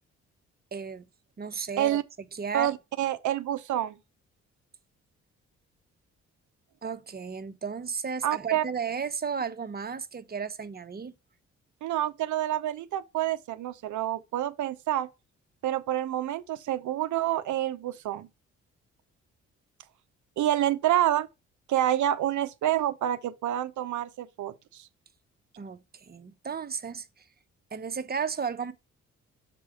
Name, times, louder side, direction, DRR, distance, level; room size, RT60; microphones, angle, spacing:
voice 1, 0.7-1.1 1.4-2.0 2.3-2.7 6.8-11.1 25.6-27.1 27.7-28.7, right 6 dB, 25° right, 0.9 m, -34 dB
voice 2, 2.5-4.0 8.2-8.6 11.8-15.1 15.6-18.3 20.4-21.3 21.7-24.9, right 12 dB, 55° right, 0.7 m, -28 dB
6.8 x 4.7 x 5.0 m
figure-of-eight pair, 40°, 36 cm